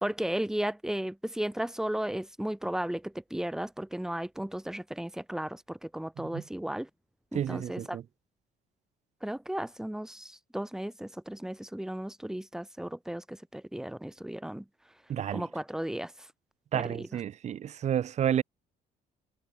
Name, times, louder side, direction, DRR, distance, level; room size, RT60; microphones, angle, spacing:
voice 1, 0.0-6.9 7.3-8.0 9.2-14.6 15.3-16.3 16.7-17.1, right 1 dB, 5° right, 1.0 m, -35 dB
voice 2, 7.3-8.0 15.1-15.5 16.7-18.4, right 10 dB, 40° right, 0.6 m, -30 dB
cardioid pair, 110°, 17 cm